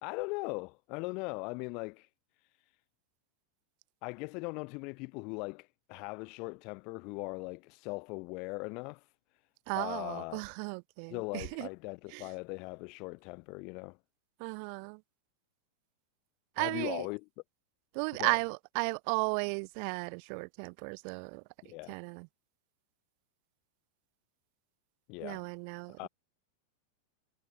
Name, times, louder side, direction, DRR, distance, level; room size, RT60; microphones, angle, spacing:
voice 1, 0.0-2.1 2.4-2.8 4.0-9.1 9.7-10.4 11.1-14.0 16.6-17.2 18.1-18.4 21.6-22.0 25.1-25.4 26.0-26.1, left 30 dB, 45° left, 3.6 m, -40 dB
voice 2, 9.7-11.7 12.1-12.3 14.4-15.0 16.6-17.1 17.9-22.3 25.2-26.1, right 40 dB or more, 45° right, 3.5 m, -35 dB
figure-of-eight pair, 90°, 0 cm